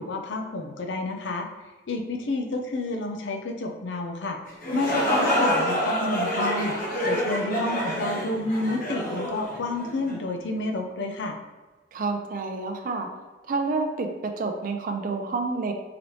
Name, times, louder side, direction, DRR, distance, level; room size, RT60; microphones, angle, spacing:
voice 1, 0.0-1.5 1.9-4.4 4.7-6.8 7.0-11.4, left 2 dB, 75° left, 4 dB, 0.5 m, -29 dB
sound 1, 4.5-10.2, equal, 50° left, 1.0 m, -27 dB
voice 2, 11.9-13.1 13.5-15.7, right 3 dB, 50° right, 4 dB, 0.4 m, -29 dB
3.9 x 3.0 x 3.0 m, 1.2 s
head